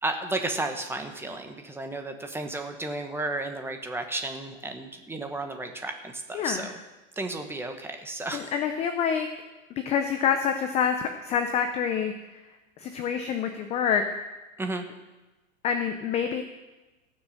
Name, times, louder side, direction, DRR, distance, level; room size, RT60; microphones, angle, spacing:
voice 1, 0.0-6.7 7.2-8.5 14.6-14.8, right 2 dB, 5° right, 5 dB, 1.1 m, -33 dB
voice 2, 6.3-6.7 8.3-9.3 9.8-12.4 12.8-14.0 15.6-16.4, left 7 dB, 15° left, 7 dB, 0.5 m, -27 dB
17.0 x 6.4 x 7.7 m, 1.1 s
hypercardioid pair, 140°, 40 cm